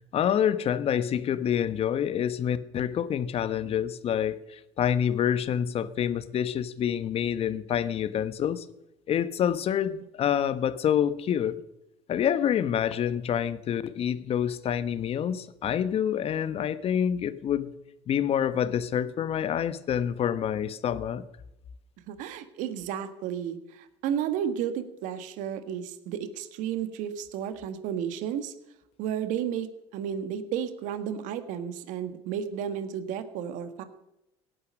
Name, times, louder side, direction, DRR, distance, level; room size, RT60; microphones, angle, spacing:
voice 1, 0.1-8.7 9.1-11.6 12.1-17.7 18.1-21.2, left 9 dB, 45° left, 14 dB, 1.2 m, -27 dB
voice 2, 22.1-28.5 29.0-33.8, right 9 dB, 65° right, 10 dB, 1.7 m, -32 dB
17.0 x 9.8 x 6.4 m, 0.89 s
supercardioid pair, 85°, 14 cm